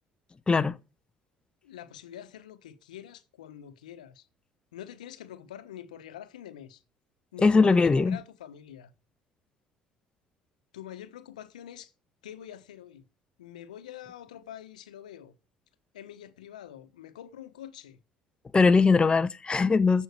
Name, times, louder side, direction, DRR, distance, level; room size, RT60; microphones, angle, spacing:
voice 1, 0.5-0.8 7.4-8.2 18.5-20.0, left 4 dB, 25° left, 0.7 m, -21 dB
voice 2, 1.6-4.3 4.7-6.8 7.3-8.9 10.7-11.9 12.2-13.0 13.4-15.3 15.9-18.0, left 10 dB, 85° left, 1.1 m, -45 dB
14.5 x 5.6 x 4.6 m
hypercardioid pair, 60°, 4 cm